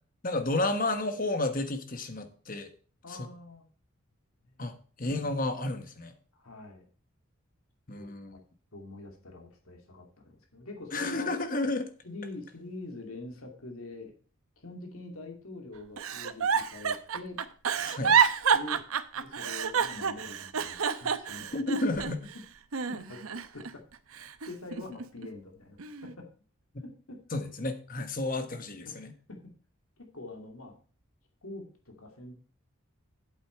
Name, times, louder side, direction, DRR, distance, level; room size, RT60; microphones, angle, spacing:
voice 1, 0.2-2.7 3.1-3.3 4.6-6.1 7.9-8.4 10.9-11.9 17.8-18.2 21.5-22.2 27.3-29.1, left 2 dB, 40° left, 8 dB, 1.3 m, -31 dB
voice 2, 3.0-3.6 4.4-4.7 6.3-6.9 7.9-8.4 8.7-11.3 12.0-14.1 14.6-17.4 18.5-18.8 19.1-21.6 22.9-23.2 23.5-23.8 24.5-25.8 26.0-26.3 26.8-27.2 28.9-29.4 30.1-30.8 31.4-32.4, left 2 dB, 85° left, 2 dB, 2.5 m, -45 dB
Giggle, 16.0-22.3 22.7-23.7 24.1-25.3 25.8-26.1, right 7 dB, 85° right, 0.8 m, -28 dB
8.4 x 8.2 x 4.5 m, 0.41 s
head